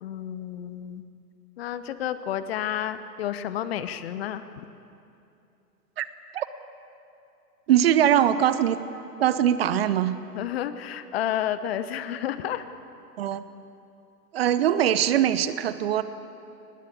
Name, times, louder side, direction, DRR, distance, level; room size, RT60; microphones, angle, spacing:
voice 1, 0.0-1.0 1.6-4.6 10.3-12.6, left 10 dB, 40° left, 12 dB, 1.0 m, -31 dB
voice 2, 7.7-8.8 9.2-10.1 13.2-13.4 14.3-16.0, right 10 dB, 40° right, 14 dB, 0.8 m, -22 dB
23.5 x 19.5 x 8.5 m, 2.7 s
figure-of-eight pair, 110°, 49 cm